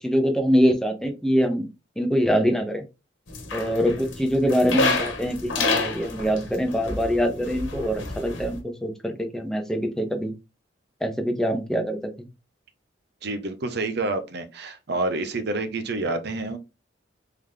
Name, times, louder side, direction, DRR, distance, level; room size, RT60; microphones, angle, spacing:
voice 1, 0.0-1.7 2.0-2.8 3.5-10.3 11.0-12.0, equal, 5° left, 0.7 m, -24 dB
sound 1, 3.3-8.6, left 3 dB, 80° left, 1.2 m, -29 dB
voice 2, 13.2-16.6, right 2 dB, 60° right, 0.8 m, -28 dB
3.7 x 3.5 x 3.3 m
head